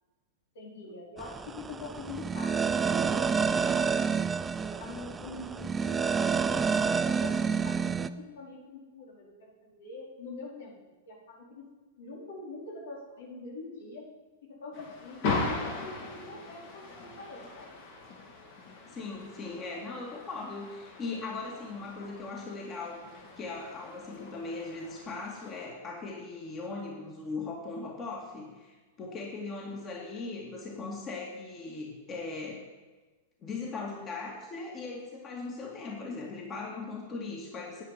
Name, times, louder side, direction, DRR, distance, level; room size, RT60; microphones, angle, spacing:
voice 1, 0.5-3.9 4.6-6.1 6.5-11.7 12.0-14.1 14.4-17.7, left 3 dB, 80° left, -2 dB, 4.5 m, -45 dB
sound 1, 1.2-8.1, right 5 dB, 15° right, 0.5 m, -29 dB
sound 2, 14.7-25.7, left 3 dB, 55° left, 3.9 m, -39 dB
voice 2, 18.9-23.1 23.4-32.6 33.4-37.8, left 3 dB, 30° left, -1 dB, 2.5 m, -39 dB
10.0 x 9.2 x 6.8 m, 1.3 s
hypercardioid pair, 120°, 0 cm